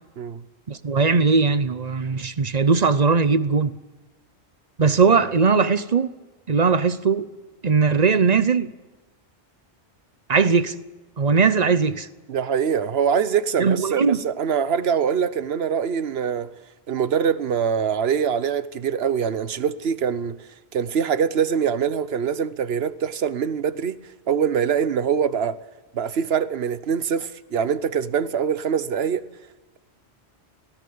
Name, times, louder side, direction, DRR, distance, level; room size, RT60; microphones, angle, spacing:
voice 1, 0.7-3.7 4.8-6.1 6.5-7.3 7.6-8.7 10.3-10.8 11.2-12.1 13.6-14.2, right 5 dB, 40° right, 0.8 m, -19 dB
voice 2, 12.3-16.5 16.9-20.4 20.7-24.0 24.3-25.6 25.9-29.2, right 7 dB, 70° right, 1.1 m, -23 dB
19.0 x 16.5 x 8.6 m
omnidirectional pair, 1.1 m